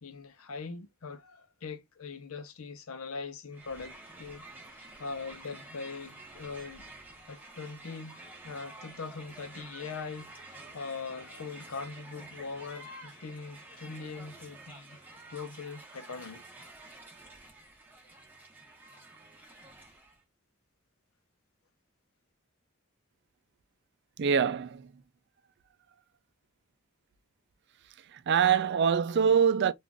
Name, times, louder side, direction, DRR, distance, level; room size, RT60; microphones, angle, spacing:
voice 1, 0.0-4.4 4.7-6.9 7.3-8.2 8.4-15.0 15.3-16.4, left 4 dB, 90° left, 0.7 m, -41 dB
Crowd, 3.5-20.2, right 2 dB, 10° right, 0.8 m, -50 dB
voice 2, 24.2-25.0 28.1-29.7, right 7 dB, 55° right, 0.4 m, -25 dB
3.7 x 2.5 x 2.2 m
head